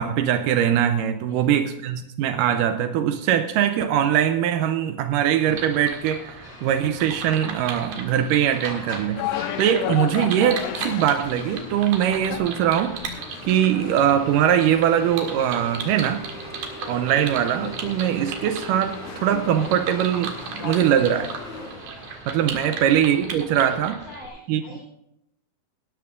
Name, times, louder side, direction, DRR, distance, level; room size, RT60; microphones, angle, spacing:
voice 1, 0.0-9.2 9.6-16.2 16.9-21.3 22.3-24.0 24.5-24.6, right 10 dB, 90° right, 8 dB, 1.9 m, -22 dB
voice 2, 1.3-1.6 22.6-22.8 23.6-24.8, left 2 dB, 30° left, -7 dB, 5.2 m, -44 dB
Industrial forklift hydraulics, 5.3-22.9, left 1 dB, 50° left, 4.8 m, -41 dB
sound 1, 5.5-24.3, right 6 dB, 65° right, 3.2 m, -37 dB
sound 2, 9.2-21.4, left 13 dB, 85° left, 2.6 m, -36 dB
19.5 x 12.5 x 2.5 m, 0.80 s
omnidirectional pair, 4.5 m